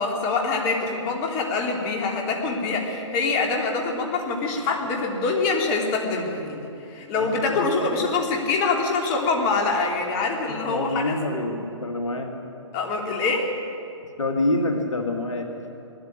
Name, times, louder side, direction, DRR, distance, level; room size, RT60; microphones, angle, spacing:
voice 1, 0.0-11.2 12.7-13.5, left 3 dB, 35° left, 1 dB, 3.2 m, -25 dB
voice 2, 7.1-7.9 10.7-12.3 14.2-15.5, left 2 dB, 80° left, 3 dB, 2.1 m, -27 dB
19.5 x 13.5 x 9.9 m, 2.8 s
hypercardioid pair, 130°, 16 cm